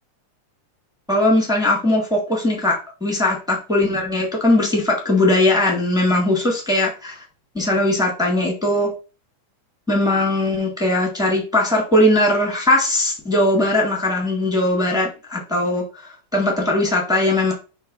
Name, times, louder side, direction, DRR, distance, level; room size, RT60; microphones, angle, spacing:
voice 1, 1.1-7.2 7.5-8.9 9.9-17.5, left 1 dB, ahead, -2 dB, 1.2 m, -19 dB
5.4 x 3.3 x 5.5 m, 0.33 s
omnidirectional pair, 3.5 m